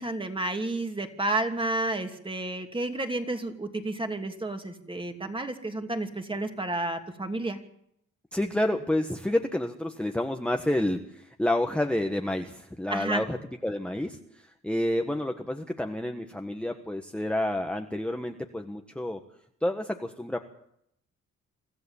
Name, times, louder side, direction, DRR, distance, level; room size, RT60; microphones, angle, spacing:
voice 1, 0.0-7.6 12.9-13.2, right 2 dB, 15° right, 5 dB, 2.8 m, -31 dB
voice 2, 8.3-13.4 13.6-14.2 14.6-19.2 19.6-20.4, left 1 dB, 5° left, 3 dB, 1.5 m, -29 dB
25.0 x 14.0 x 7.3 m, 0.75 s
cardioid pair, 90°, 30 cm